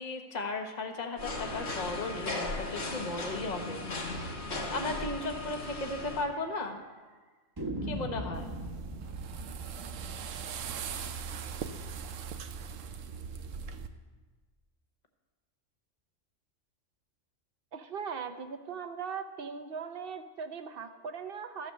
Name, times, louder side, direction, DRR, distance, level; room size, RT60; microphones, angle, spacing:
voice 1, 0.0-4.3 4.7-6.8 7.8-8.5, left 2 dB, 35° left, 5 dB, 1.1 m, -36 dB
sound 1, 1.2-6.2, left 2 dB, 60° left, 1.7 m, -37 dB
sound 2, 6.3-6.9 7.6-12.4, right 1 dB, 20° right, 0.9 m, -42 dB
sound 3, 8.3-13.9, right 6 dB, 80° right, 1.0 m, -40 dB
voice 2, 17.7-21.7, right 6 dB, 55° right, 8 dB, 0.8 m, -39 dB
13.5 x 6.2 x 6.5 m, 1.3 s
omnidirectional pair, 1.3 m